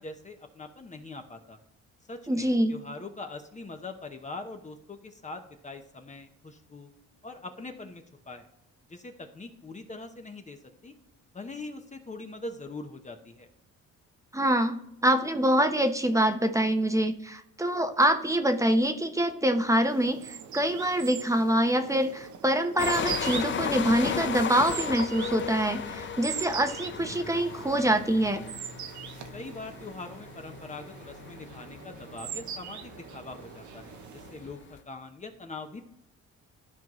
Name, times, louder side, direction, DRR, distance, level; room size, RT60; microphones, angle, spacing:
voice 1, 0.0-1.6 2.1-6.9 7.2-8.5 8.9-10.9 11.3-13.5 29.3-35.8, left 3 dB, 25° left, 5 dB, 0.9 m, -42 dB
voice 2, 2.3-2.8 14.3-28.4, right 1 dB, 10° right, 7 dB, 0.8 m, -25 dB
sound 1, 19.7-34.6, right 8 dB, 70° right, 0.8 m, -41 dB
sound 2, 22.8-34.8, left 7 dB, 40° left, 0.5 m, -36 dB
13.0 x 4.6 x 3.1 m, 0.79 s
cardioid pair, 90°, 30 cm